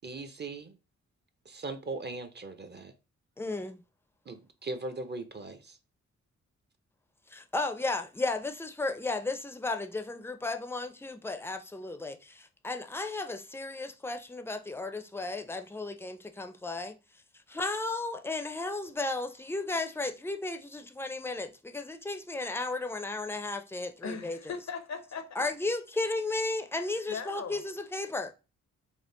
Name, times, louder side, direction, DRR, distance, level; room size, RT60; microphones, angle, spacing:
voice 1, 0.0-0.8 1.4-2.9 4.3-5.8, right 2 dB, 35° right, 0.6 m, -39 dB
voice 2, 3.4-3.8 7.3-17.0 17.5-24.4 25.4-28.3, left 2 dB, 10° left, 0.5 m, -34 dB
voice 3, 24.0-25.5 26.8-27.6, left 6 dB, 65° left, 0.6 m, -39 dB
3.6 x 2.1 x 3.7 m
cardioid pair, 65°, 30 cm